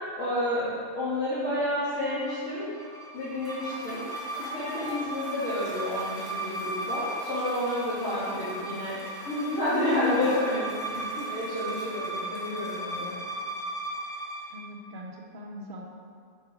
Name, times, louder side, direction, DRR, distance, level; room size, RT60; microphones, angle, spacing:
voice 1, 0.1-0.7 1.0-2.7 3.1-4.0 4.5-9.0 9.3-13.1, left 1 dB, 70° left, -13 dB, 2.3 m, -30 dB
sound 1, 1.9-14.6, right 2 dB, 5° left, 0.6 m, -37 dB
Cheering / Applause / Crowd, 3.2-13.7, equal, 25° right, 1.9 m, -45 dB
voice 2, 10.9-11.3 14.5-15.8, equal, 45° right, -1 dB, 1.0 m, -42 dB
7.4 x 4.8 x 4.9 m, 2.2 s
omnidirectional pair, 1.3 m